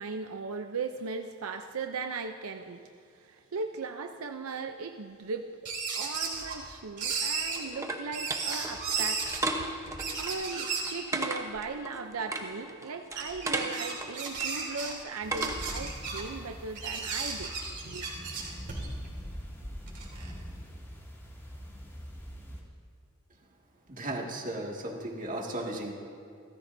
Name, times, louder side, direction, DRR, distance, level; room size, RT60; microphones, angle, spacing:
voice 1, 0.0-2.8 3.1-5.5 5.9-9.9 10.2-17.5 17.8-18.0, right 4 dB, 80° right, 6 dB, 0.6 m, -38 dB
sound 1, 5.6-6.7 7.0-7.6 8.1-9.4 9.9-11.0 11.6-11.7 12.4-12.5 13.1-14.9 15.3-16.2 16.7-19.1 19.6-20.4, right 5 dB, 55° right, 3.3 m, -34 dB
sound 2, 6.9-15.9, right 2 dB, 15° right, 1.0 m, -37 dB
sound 3, 15.2-22.6, equal, 10° left, 2.3 m, -43 dB
voice 2, 23.9-25.9, right 1 dB, 40° right, 0 dB, 2.1 m, -35 dB
30.0 x 14.0 x 2.7 m, 2.5 s
head